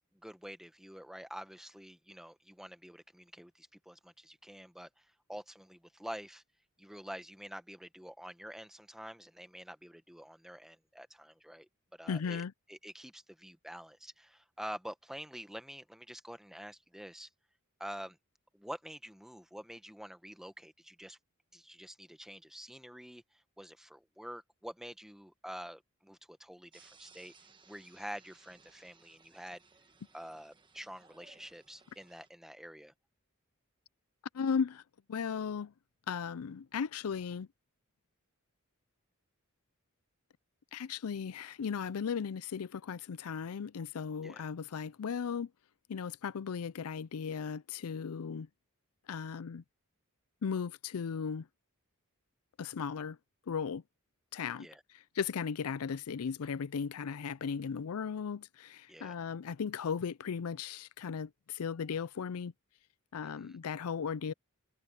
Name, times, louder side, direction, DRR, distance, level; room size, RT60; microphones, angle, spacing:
voice 1, 0.2-6.4 6.8-11.7 12.0-17.3 17.8-18.2 18.5-21.2 21.5-27.3 27.7-29.6 30.1-32.9 44.2-44.4 54.6-54.8 58.9-59.2 63.2-63.6, equal, ahead, 1.0 m, -47 dB
voice 2, 12.1-12.5 34.3-34.8 35.1-35.7 36.1-37.5 40.7-45.5 45.9-48.5 49.1-49.6 50.4-51.5 52.6-53.2 53.5-53.8 54.3-54.7 55.2-62.5 63.1-64.3, left 6 dB, 75° left, 0.5 m, -36 dB
sound 1, 26.7-32.3, right 4 dB, 20° right, 1.2 m, -62 dB
head